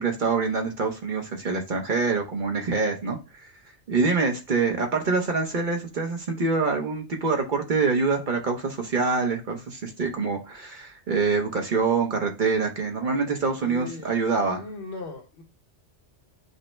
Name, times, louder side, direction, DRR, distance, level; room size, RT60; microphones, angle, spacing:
voice 1, 0.0-3.5 3.9-14.6, right 4 dB, 50° right, 3 dB, 0.7 m, -25 dB
voice 2, 13.6-14.1 14.6-15.4, left 3 dB, 70° left, 4 dB, 1.2 m, -38 dB
5.3 x 2.0 x 4.3 m, 0.30 s
omnidirectional pair, 1.2 m